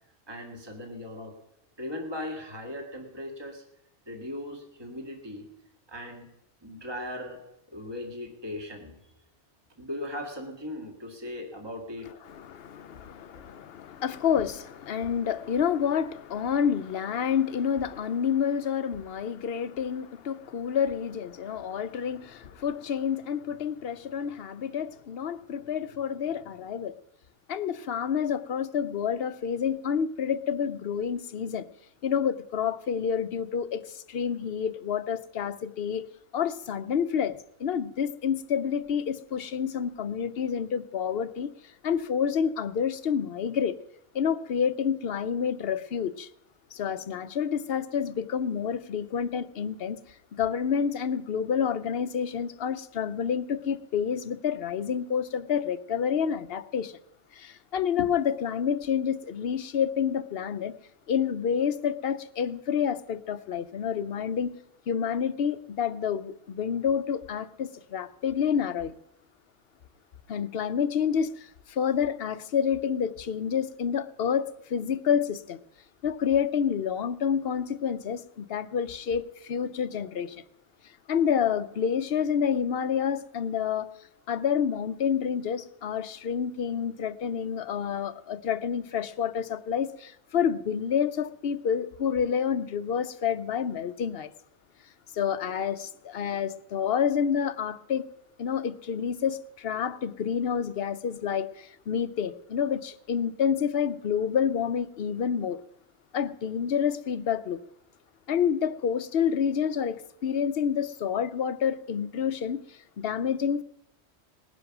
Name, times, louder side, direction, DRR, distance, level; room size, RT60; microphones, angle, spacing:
voice 1, 0.3-1.3 1.8-3.6 4.1-5.5 5.9-6.2 6.6-7.4 7.7-8.9 9.8-12.1 13.3-13.4, left 1 dB, 20° right, 2.1 m, -38 dB
voice 2, 12.3-26.9 27.5-31.7 32.0-36.0 36.3-41.5 41.8-43.7 44.1-46.3 46.7-50.0 50.3-57.0 57.3-60.7 61.1-64.5 64.9-68.9 70.3-75.6 76.0-80.4 81.1-83.9 84.3-94.3 95.1-98.0 98.4-105.6 106.1-107.6 108.3-113.6, left 7 dB, 60° left, 0.9 m, -28 dB
19.5 x 10.5 x 6.0 m
omnidirectional pair, 1.2 m